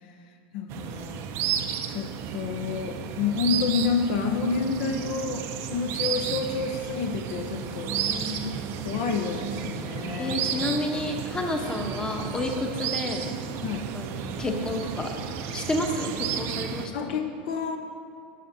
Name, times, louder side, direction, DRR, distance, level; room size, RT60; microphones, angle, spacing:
voice 1, 0.5-1.3 1.9-5.4 5.7-8.0 8.8-10.8 13.6-13.8 16.9-17.8, left 5 dB, 65° left, 5 dB, 0.6 m, -29 dB
sound 1, 0.7-16.9, right 8 dB, 50° right, 0.5 m, -33 dB
voice 2, 8.1-8.7 10.2-13.3 13.9-15.1 15.4-17.2, left 1 dB, 15° left, 2 dB, 0.9 m, -30 dB
11.5 x 6.4 x 2.7 m, 2.5 s
supercardioid pair, 120°, 6 cm